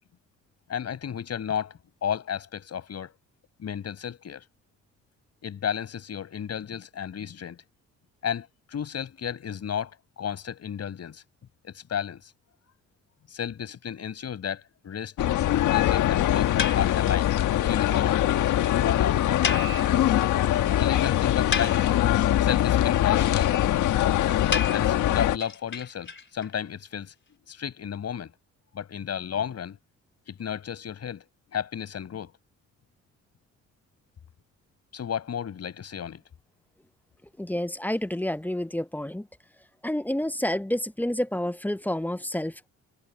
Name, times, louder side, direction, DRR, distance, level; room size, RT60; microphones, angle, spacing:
voice 1, 0.7-3.1 3.6-4.4 5.4-7.6 8.2-11.2 11.6-12.3 13.3-15.1 15.7-17.3 17.6-18.2 18.7-20.2 20.8-21.8 22.4-23.6 24.6-27.1 27.5-28.3 28.7-29.8 30.3-31.3 31.5-32.4 34.9-36.2, left 8 dB, 55° left, 6.8 m, -33 dB
sound 1, 15.2-25.4, left 12 dB, 75° left, 1.5 m, -23 dB
sound 2, 16.6-17.3 17.6-17.7 17.9-18.0 18.3-18.4 18.6-18.7 19.4-20.4 20.8-20.9 21.3-22.3 24.5-26.5, left 5 dB, 40° left, 4.2 m, -32 dB
voice 2, 37.4-39.3 39.8-42.7, left 1 dB, 5° left, 0.8 m, -29 dB
cardioid pair, 90°, 30 cm